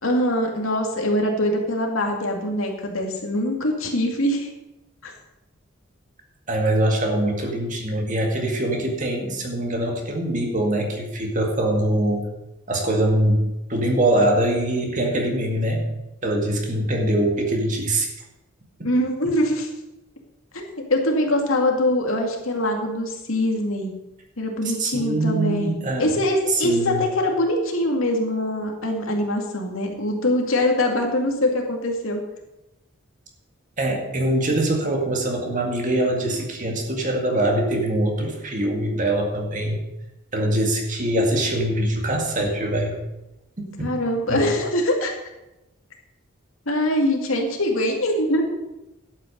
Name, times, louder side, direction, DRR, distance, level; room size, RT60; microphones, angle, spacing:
voice 1, 0.0-4.5 5.0-5.1 18.8-19.7 20.5-23.9 24.4-32.2 43.8-45.1 46.7-48.4, left 1 dB, 85° left, 1 dB, 2.3 m, -23 dB
voice 2, 6.5-12.2 12.7-15.9 16.2-18.1 18.8-18.9 24.6-26.1 26.5-27.0 33.8-39.9 40.3-43.0 43.8-43.9 44.3-44.4, right 1 dB, 40° right, 2 dB, 2.0 m, -23 dB
11.5 x 8.6 x 5.3 m, 0.94 s
head